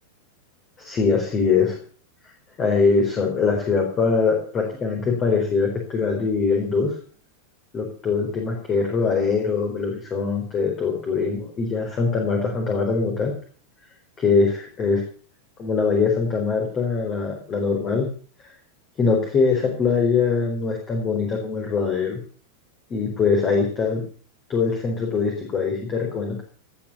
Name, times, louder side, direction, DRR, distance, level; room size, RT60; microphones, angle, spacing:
voice 1, 0.8-1.8 2.2-2.3 2.6-6.9 7.7-13.3 14.2-15.0 15.6-18.1 18.4-18.5 19.0-22.2 22.9-24.0 24.5-26.4, left 4 dB, 25° left, 1 dB, 4.2 m, -22 dB
18.5 x 8.7 x 7.2 m, 0.43 s
figure-of-eight pair, 90°, 0 cm